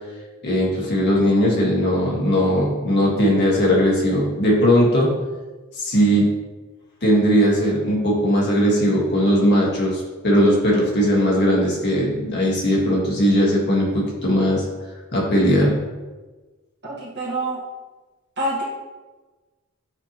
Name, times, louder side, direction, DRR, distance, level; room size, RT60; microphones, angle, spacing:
voice 1, 0.4-5.1 5.7-6.3 7.0-14.6 15.1-15.8, equal, 55° left, -3 dB, 1.6 m, -19 dB
voice 2, 16.8-17.6 18.4-18.6, right 1 dB, 55° right, -4 dB, 1.6 m, -26 dB
7.9 x 4.3 x 3.0 m, 1.2 s
head